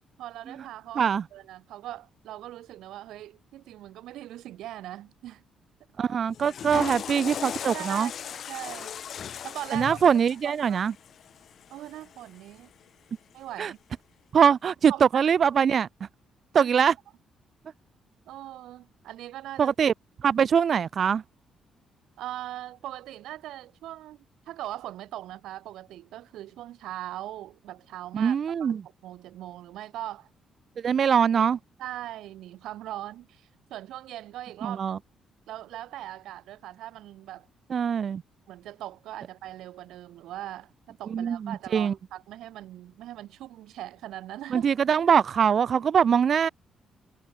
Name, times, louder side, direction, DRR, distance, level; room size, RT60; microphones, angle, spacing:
voice 1, 0.2-5.4 6.7-6.9 7.7-8.9 9.4-10.0 10.4-10.9 11.7-12.7 13.3-13.8 14.9-15.0 16.5-16.7 18.3-19.7 22.2-28.8 29.0-30.3 31.0-31.1 31.8-34.8 35.5-37.5 38.5-44.7, right 14 dB, 85° right, 7.3 m, -40 dB
voice 2, 6.0-8.1 9.7-10.9 13.6-13.7 14.3-15.9 16.5-16.9 19.6-19.9 20.2-21.2 28.1-28.8 30.8-31.6 34.6-35.0 37.7-38.2 41.1-41.9 44.5-46.5, right 7 dB, 50° right, 1.4 m, -23 dB
Water / Toilet flush, 6.3-12.5, left 8 dB, 60° left, 1.4 m, -38 dB
cardioid pair, 90°, 0 cm